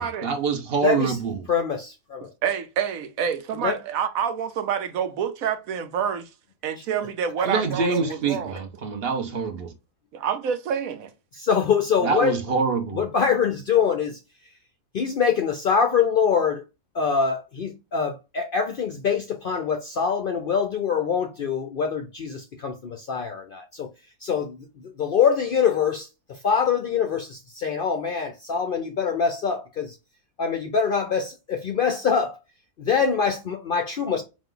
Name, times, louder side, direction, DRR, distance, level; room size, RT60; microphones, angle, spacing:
voice 1, 0.0-1.5 7.4-9.7 12.0-13.0, right 5 dB, 50° right, 1.0 m, -25 dB
voice 2, 0.8-1.2 1.5-2.3 3.6-3.8 11.5-12.3 12.9-14.2 14.9-16.6 16.9-23.9 24.2-24.6 25.0-26.1 26.4-29.9 30.4-32.4 32.8-34.2, left 6 dB, 60° left, 0.6 m, -24 dB
voice 3, 2.2-6.3 6.6-8.7 10.1-11.1, right 8 dB, 80° right, 1.1 m, -28 dB
4.1 x 2.5 x 3.7 m
omnidirectional pair, 1.4 m